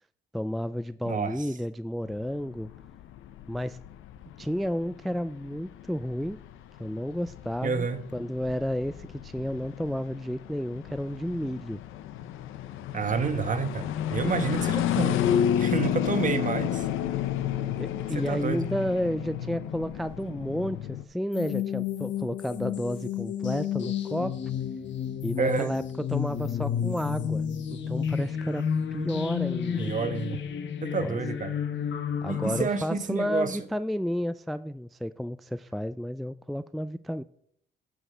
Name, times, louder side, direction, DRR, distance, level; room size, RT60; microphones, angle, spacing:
voice 1, 0.3-2.7 3.5-3.8 4.4-6.4 6.8-7.9 8.1-11.8 14.4-14.5 17.8-24.3 25.2-25.8 26.1-27.4 27.7-28.6 28.9-29.9 31.0-31.2 32.2-37.2, equal, ahead, 0.3 m, -31 dB
voice 2, 1.0-1.5 7.6-8.0 12.9-15.2 15.6-16.9 18.1-18.6 25.4-25.7 29.8-30.4 30.8-31.5 32.3-33.6, right 5 dB, 40° right, 1.2 m, -29 dB
sound 1, 2.1-21.0, left 10 dB, 90° left, 0.7 m, -31 dB
sound 2, 21.3-32.6, left 8 dB, 65° left, 1.2 m, -31 dB
9.8 x 5.1 x 6.6 m
cardioid pair, 90°, 20 cm